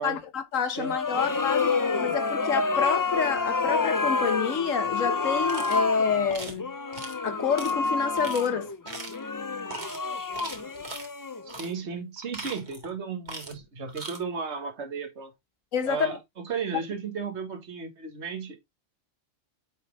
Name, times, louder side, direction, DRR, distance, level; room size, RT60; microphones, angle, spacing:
voice 1, 0.0-1.7 2.0-6.7 7.2-8.7 15.7-16.2 16.7-16.8, left 6 dB, 85° left, 1.5 m, -28 dB
sound 1, 0.8-11.7, left 4 dB, 35° left, 0.3 m, -28 dB
voice 2, 0.8-1.3 11.4-15.3 15.9-18.6, right 5 dB, 60° right, 1.8 m, -34 dB
sound 2, 5.4-5.8 6.3-6.6 6.9-7.2 7.6-7.7 8.2-8.5 8.8-9.2 9.7-10.0 10.3-11.1 11.5-11.7 12.2-12.9 13.2-13.6 13.9-14.2, right 2 dB, 35° right, 1.9 m, -39 dB
9.1 x 4.2 x 3.4 m
omnidirectional pair, 1.3 m